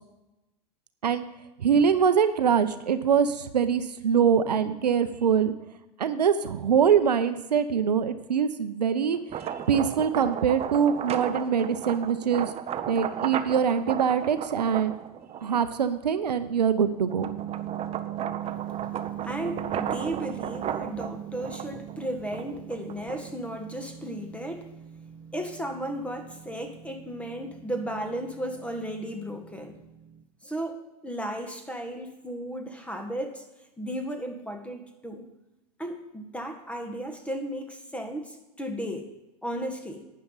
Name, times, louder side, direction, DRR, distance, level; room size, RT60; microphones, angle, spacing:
voice 1, 1.6-5.5 6.0-12.5 12.9-15.0 15.4-17.3, right 7 dB, 80° right, 11 dB, 0.7 m, -24 dB
sound 1, 9.1-15.7 16.3-23.5, right 9 dB, 30° right, 0.8 m, -34 dB
sound 2, 17.0-30.2, right 12 dB, 55° right, 1.0 m, -41 dB
voice 2, 19.2-24.7 25.3-29.8 30.4-33.5 33.8-35.3 35.8-39.1 39.4-40.0, right 1 dB, 5° left, 5 dB, 1.8 m, -35 dB
12.0 x 9.4 x 4.0 m, 0.98 s
hypercardioid pair, 85°, 21 cm